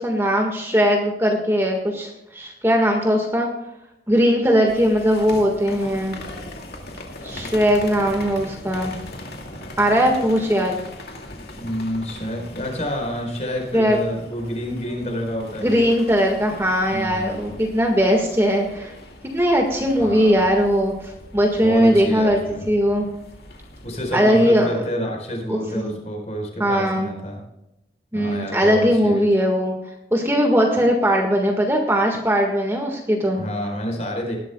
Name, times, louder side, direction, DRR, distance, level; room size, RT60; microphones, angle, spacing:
voice 1, 0.0-3.5 4.1-6.2 7.2-8.9 9.8-10.8 13.7-14.0 15.6-18.9 19.3-22.4 22.7-23.1 24.1-24.7 25.5-26.0 26.6-27.1 28.1-29.7 30.1-33.4, equal, 15° right, 1 dB, 1.7 m, -19 dB
sound 1, 4.7-24.1, left 1 dB, 65° left, 2.4 m, -40 dB
voice 2, 11.5-15.8 16.9-17.6 20.0-20.4 21.6-22.7 23.8-27.4 28.1-29.2 33.4-34.4, equal, 40° left, 1 dB, 4.7 m, -28 dB
19.5 x 12.0 x 2.3 m, 0.87 s
head